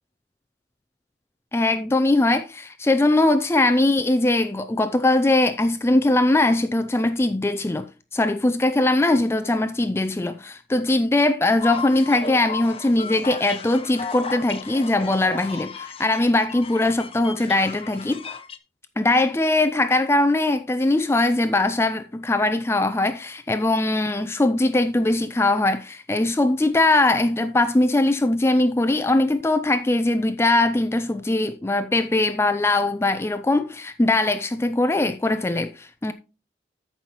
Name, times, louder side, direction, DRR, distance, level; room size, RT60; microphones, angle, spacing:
voice 1, 1.5-7.9 8.1-18.2 19.0-36.1, left 2 dB, 15° left, 0.4 m, -21 dB
sound 1, 11.6-18.6, left 5 dB, 30° left, 0.8 m, -35 dB
13.5 x 5.5 x 2.9 m
head